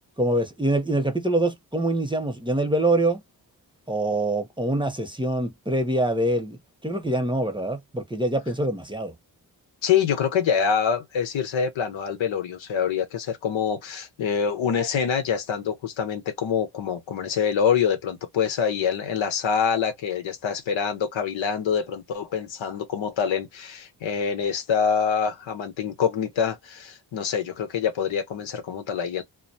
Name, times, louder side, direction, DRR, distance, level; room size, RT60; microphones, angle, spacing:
voice 1, 0.2-3.2 3.9-6.6 6.8-9.1, right 1 dB, 10° right, 0.8 m, -24 dB
voice 2, 9.8-29.2, left 7 dB, 80° left, 0.9 m, -25 dB
2.2 x 2.2 x 2.6 m
supercardioid pair, 45°, 45 cm